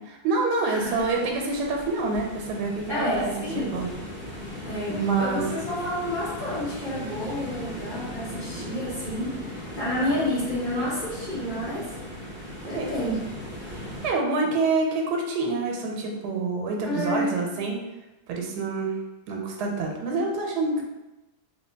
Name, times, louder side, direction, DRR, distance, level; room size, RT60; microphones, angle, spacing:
voice 1, 0.1-3.3 3.7-3.9 4.9-5.4 12.6-12.9 13.8-17.8 18.3-19.0 19.3-20.8, right 3 dB, 85° right, 0 dB, 1.3 m, -27 dB
voice 2, 0.7-1.0 2.9-3.8 4.6-11.8 12.6-13.2 16.8-17.3, left 1 dB, 30° left, -11 dB, 1.7 m, -29 dB
sound 1, 0.8-14.1, left 1 dB, 10° right, 0.7 m, -38 dB
3.1 x 2.9 x 3.3 m, 1.0 s
omnidirectional pair, 1.7 m